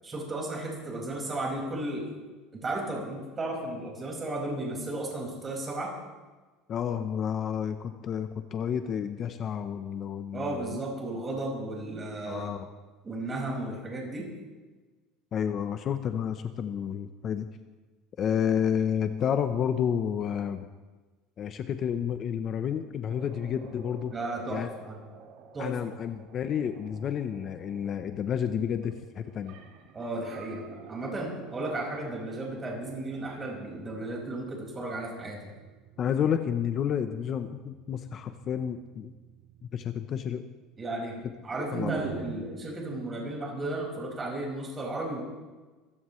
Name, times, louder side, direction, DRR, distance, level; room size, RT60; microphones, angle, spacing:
voice 1, 0.0-2.1 2.5-6.0 10.3-12.5 13.0-14.3 24.1-25.0 25.5-25.7 29.9-35.5 40.8-45.2, right 2 dB, 20° right, -1 dB, 5.4 m, -34 dB
voice 2, 6.7-10.8 12.3-12.7 15.3-17.5 18.2-20.7 21.4-24.1 24.5-24.7 25.6-29.6 36.0-39.1 39.7-40.4 41.6-42.0, left 8 dB, 35° left, 9 dB, 0.8 m, -30 dB
sound 1, 23.1-42.3, right 7 dB, 70° right, 2.1 m, -48 dB
24.5 x 16.0 x 3.2 m, 1.3 s
cardioid pair, 145°, 0 cm